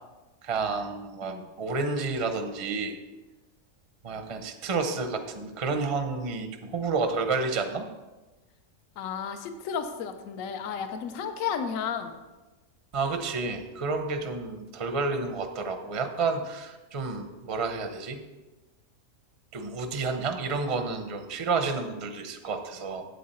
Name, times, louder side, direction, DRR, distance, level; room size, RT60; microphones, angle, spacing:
voice 1, 0.4-3.0 4.0-7.9 12.9-18.2 19.5-23.1, right 4 dB, 30° right, 6 dB, 0.6 m, -30 dB
voice 2, 9.0-12.2, left 7 dB, 65° left, 8 dB, 1.1 m, -33 dB
8.6 x 8.3 x 4.3 m, 1.1 s
omnidirectional pair, 1.6 m